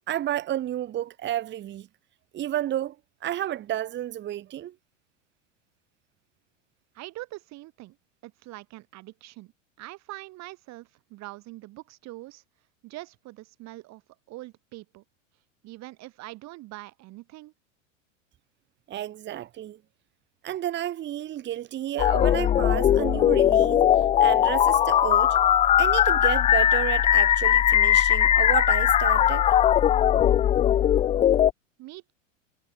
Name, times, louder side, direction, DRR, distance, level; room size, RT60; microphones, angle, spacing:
voice 1, 0.1-1.9 2.3-3.0 3.2-4.7 18.9-19.8 20.4-23.9 24.2-25.4 25.8-29.5, right 12 dB, 30° right, 1.3 m, -31 dB
voice 2, 6.9-8.0 8.2-9.5 9.8-12.4 12.8-14.0 14.3-15.0 15.6-17.5 31.8-32.1, right 19 dB, 45° right, 2.6 m, -43 dB
sound 1, 22.0-31.5, left 10 dB, 15° left, 0.4 m, -20 dB
hypercardioid pair, 100°, 38 cm